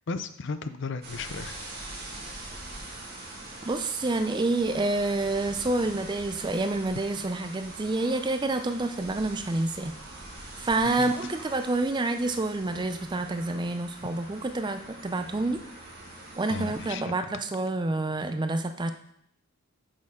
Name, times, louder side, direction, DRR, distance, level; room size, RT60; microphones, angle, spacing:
voice 1, 0.1-1.6 10.8-11.1 16.5-17.2, left 4 dB, 55° left, 11 dB, 0.5 m, -35 dB
sound 1, 1.0-16.9, right 2 dB, 45° right, 2.2 m, -43 dB
voice 2, 3.6-9.9 10.6-15.6 16.4-18.9, right 2 dB, 20° right, 8 dB, 0.4 m, -28 dB
8.3 x 6.3 x 3.7 m, 0.69 s
head